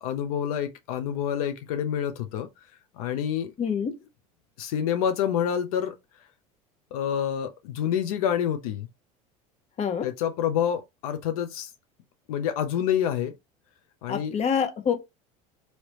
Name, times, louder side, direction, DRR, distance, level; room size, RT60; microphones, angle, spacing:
voice 1, 0.0-2.5 3.0-3.5 4.6-5.9 6.9-8.9 10.0-11.7 12.3-13.3 14.0-14.4, left 9 dB, 80° left, 0.5 m, -27 dB
voice 2, 3.6-3.9 9.8-10.1 14.1-14.9, left 7 dB, 35° left, 0.8 m, -26 dB
3.1 x 2.8 x 3.0 m
supercardioid pair, 95°, 18 cm